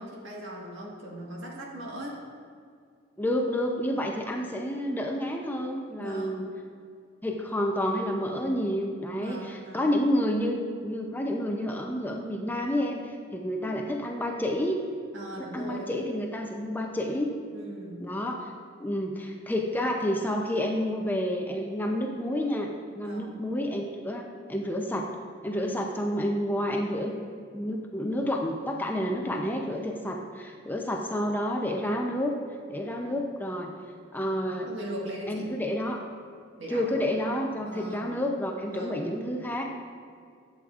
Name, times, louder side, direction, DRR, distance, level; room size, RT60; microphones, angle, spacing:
voice 1, 0.0-2.2 6.0-6.4 9.2-9.8 15.1-15.9 17.5-18.1 23.0-23.3 34.7-35.5 36.6-36.9 37.7-38.1 38.7-39.0, right 1 dB, 70° right, -2 dB, 1.5 m, -39 dB
voice 2, 3.2-6.5 7.2-14.8 15.4-17.3 18.0-18.5 18.8-22.7 23.0-25.1 25.4-27.1 27.5-32.4 32.7-33.7 34.1-34.7 35.3-36.0 36.7-39.7, equal, 10° left, 1 dB, 0.5 m, -29 dB
11.5 x 7.6 x 2.4 m, 2.2 s
head